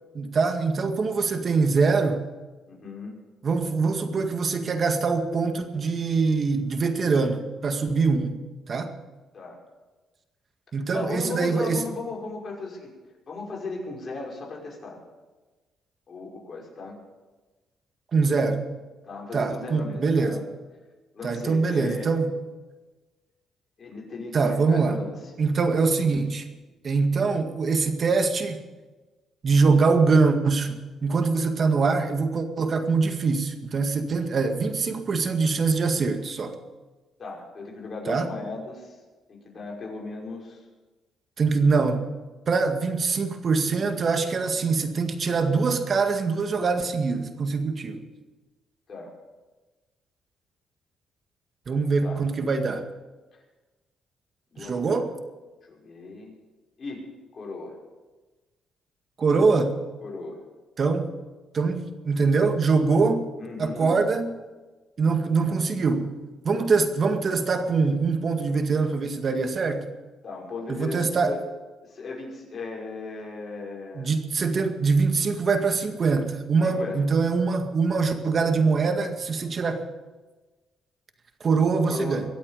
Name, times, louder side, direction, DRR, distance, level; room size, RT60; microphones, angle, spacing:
voice 1, 0.1-2.2 3.4-8.4 8.7-8.9 10.7-11.8 18.1-18.6 19.3-20.4 21.2-22.3 24.3-25.0 25.4-26.5 26.8-28.6 29.4-36.5 38.1-38.3 41.4-42.1 42.5-48.0 51.7-52.8 54.6-55.1 59.2-59.7 60.8-61.1 61.5-63.3 63.6-64.4 65.0-66.1 66.4-69.9 70.7-71.3 74.0-79.8 81.4-82.2, right 4 dB, 45° right, 6 dB, 1.9 m, -23 dB
voice 2, 2.7-3.2 9.3-9.6 10.9-12.9 13.3-15.0 16.1-17.0 19.0-20.4 21.1-22.1 23.8-25.2 37.2-39.0 39.3-40.6 48.9-49.1 52.0-52.2 54.5-55.0 55.7-56.4 56.8-57.0 57.3-57.8 60.0-60.4 63.4-64.0 70.2-71.4 71.8-74.1 76.6-77.0 81.9-82.2, left 3 dB, 45° left, -2 dB, 5.7 m, -36 dB
23.5 x 8.5 x 6.8 m, 1.2 s
cardioid pair, 90°, 0 cm